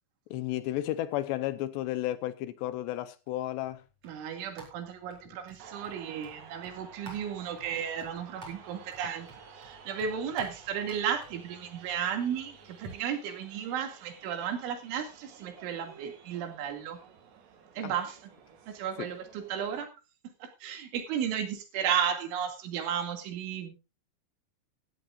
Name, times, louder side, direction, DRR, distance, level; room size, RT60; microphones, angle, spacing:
voice 1, 0.3-3.8 17.8-17.9 19.0-19.1, left 14 dB, 80° left, 2.8 m, -33 dB
sound 1, 3.3-12.9, right 1 dB, 35° right, 5.4 m, -53 dB
voice 2, 4.0-9.3 9.6-17.0 17.8-18.2 18.7-19.9 20.4-23.8, right 8 dB, 90° right, 4.8 m, -34 dB
sound 2, 5.6-19.8, right 6 dB, 70° right, 4.4 m, -53 dB
16.5 x 14.0 x 2.5 m
omnidirectional pair, 5.3 m